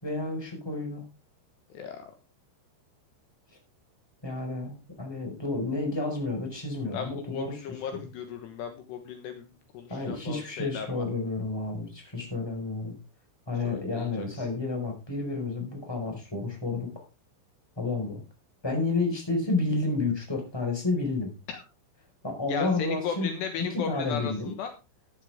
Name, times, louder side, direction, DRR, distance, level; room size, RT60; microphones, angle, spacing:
voice 1, 0.0-1.0 4.2-7.6 7.9-8.1 9.9-13.0 13.5-16.9 17.8-18.2 18.6-21.3 22.2-23.3 23.7-24.5, left 3 dB, 5° left, 2 dB, 4.4 m, -30 dB
voice 2, 1.7-2.1 6.9-11.0 13.6-14.5 21.5-21.6 22.5-24.7, left 7 dB, 70° left, 6 dB, 3.2 m, -36 dB
13.5 x 11.0 x 3.5 m, 0.28 s
omnidirectional pair, 5.4 m